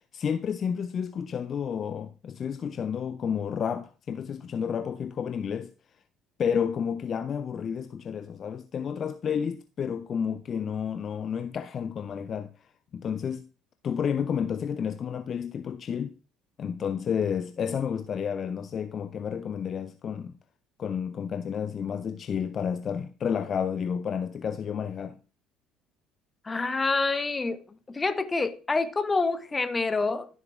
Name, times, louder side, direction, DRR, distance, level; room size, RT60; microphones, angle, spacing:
voice 1, 0.1-5.7 6.4-12.5 12.9-13.5 13.8-16.1 16.6-20.3 20.8-25.2, left 7 dB, 45° left, 0.4 m, -31 dB
voice 2, 26.4-27.6 27.9-30.3, left 3 dB, 25° left, 0.8 m, -27 dB
12.5 x 7.3 x 2.3 m
figure-of-eight pair, 55°, 0 cm